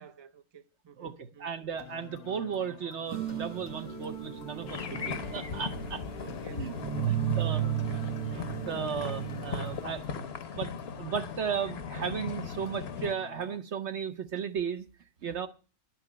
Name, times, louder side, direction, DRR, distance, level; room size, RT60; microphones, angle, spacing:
voice 1, 0.0-1.5 6.2-8.2, right 7 dB, 35° right, 0.4 m, -53 dB
voice 2, 1.0-6.0 6.5-7.6 8.3-10.2 10.5-14.9 15.2-15.5, right 7 dB, 55° right, 0.9 m, -35 dB
sound 1, 1.7-13.6, left 11 dB, 85° left, 1.3 m, -48 dB
sound 2, 3.1-10.0, right 10 dB, 85° right, 1.3 m, -34 dB
sound 3, 4.7-13.1, left 5 dB, 50° left, 1.0 m, -38 dB
10.5 x 6.1 x 8.5 m
omnidirectional pair, 1.7 m